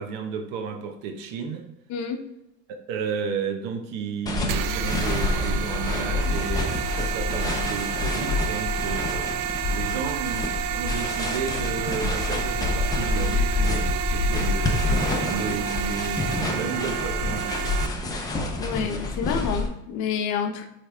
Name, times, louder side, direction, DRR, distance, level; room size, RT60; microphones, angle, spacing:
voice 1, 0.0-1.7 2.9-9.2 9.7-14.8 15.2-18.2, right 5 dB, 85° right, 5 dB, 1.1 m, -32 dB
voice 2, 1.9-2.3 18.6-20.7, left 7 dB, 45° left, 5 dB, 0.7 m, -28 dB
sound 1, 4.3-19.7, left 3 dB, 10° left, 0.4 m, -27 dB
sound 2, 4.5-17.9, right 11 dB, 55° right, 0.4 m, -30 dB
8.6 x 3.4 x 3.3 m, 0.85 s
cardioid pair, 170°, 40 cm